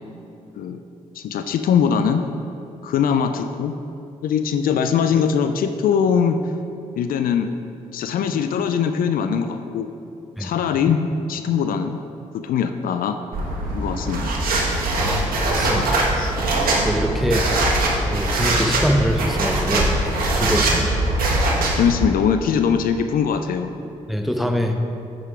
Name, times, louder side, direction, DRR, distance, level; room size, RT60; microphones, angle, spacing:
voice 1, 1.1-2.2 2.8-3.7 4.2-6.4 7.0-7.5 7.9-9.9 10.4-12.0 12.3-13.2 13.7-14.4 15.6-16.4 21.8-23.7, left 7 dB, 65° left, 8 dB, 0.4 m, -21 dB
sound 1, 13.3-21.9, right 2 dB, 70° right, 1.3 m, -21 dB
voice 2, 15.0-15.8 16.8-17.5 18.1-19.9 20.3-21.0 24.1-24.7, equal, ahead, 4 dB, 0.9 m, -23 dB
9.4 x 3.9 x 4.8 m, 2.8 s
hypercardioid pair, 40°, 16 cm